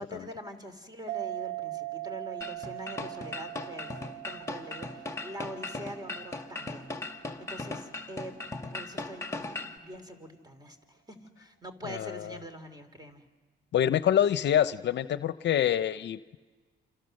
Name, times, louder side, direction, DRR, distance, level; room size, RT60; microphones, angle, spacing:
voice 1, 0.0-3.9 4.2-8.4 8.7-13.2, equal, 20° right, 8 dB, 3.1 m, -44 dB
sound 1, 1.1-8.1, right 18 dB, 65° right, 1.2 m, -41 dB
sound 2, 2.4-9.8, left 2 dB, 15° left, 2.1 m, -38 dB
voice 2, 11.9-12.4 13.7-16.4, left 10 dB, 60° left, 14 dB, 0.7 m, -26 dB
28.0 x 28.0 x 6.5 m, 1.4 s
cardioid pair, 90°, 20 cm